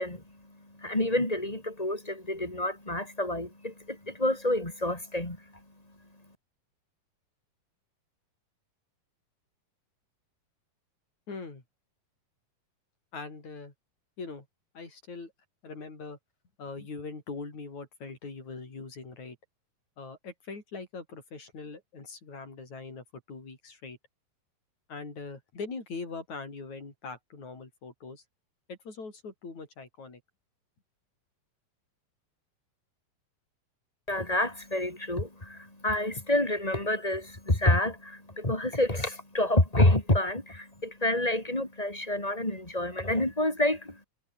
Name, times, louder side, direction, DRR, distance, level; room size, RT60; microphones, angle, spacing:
voice 1, 0.0-5.4 34.1-44.0, left 1 dB, 10° left, 3.2 m, -28 dB
voice 2, 11.3-11.6 13.1-13.7 14.2-14.5 14.7-15.3 15.6-16.2 16.6-19.4 20.0-24.0 24.9-28.2 28.7-30.2, left 4 dB, 55° left, 7.1 m, -41 dB
omnidirectional pair, 4.1 m